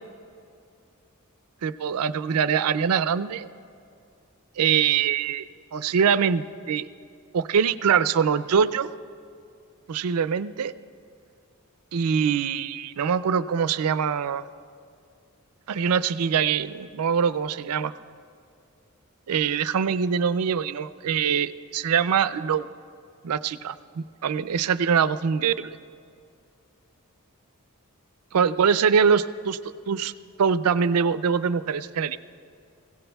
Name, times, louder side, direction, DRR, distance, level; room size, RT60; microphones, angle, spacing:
voice 1, 1.6-3.5 4.6-6.9 7.3-8.9 9.9-10.7 11.9-14.4 15.7-17.9 19.3-22.7 23.2-25.8 28.3-29.6 29.9-30.1 30.4-32.2, right 7 dB, 90° right, 14 dB, 0.4 m, -23 dB
21.5 x 16.5 x 2.3 m, 2.4 s
head